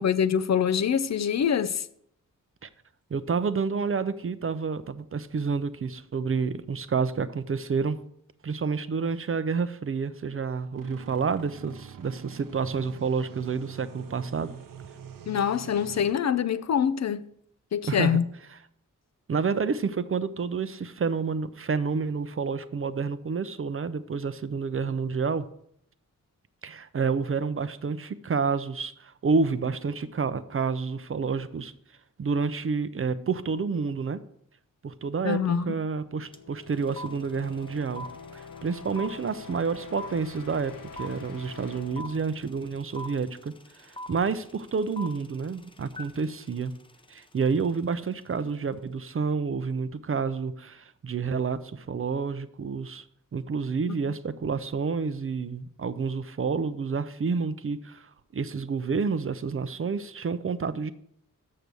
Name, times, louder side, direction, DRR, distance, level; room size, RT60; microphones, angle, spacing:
voice 1, 0.0-1.9 15.3-17.2 17.7-18.2 35.2-35.8 53.9-54.0, left 8 dB, 55° left, 0.5 m, -25 dB
voice 2, 3.1-8.0 8.4-14.5 17.8-18.2 19.3-25.5 26.6-31.7 32.2-34.2 34.8-35.4 35.7-38.1 38.3-46.7 47.1-53.0 53.3-60.9, right 5 dB, 40° right, 0.5 m, -29 dB
sound 1, 10.8-16.1, right 8 dB, 80° right, 0.7 m, -45 dB
sound 2, 35.9-43.6, left 5 dB, 80° left, 0.8 m, -46 dB
sound 3, 36.3-36.4 36.6-47.8, left 1 dB, 15° left, 0.7 m, -43 dB
6.8 x 6.6 x 6.1 m
wide cardioid pair, 75°, 32 cm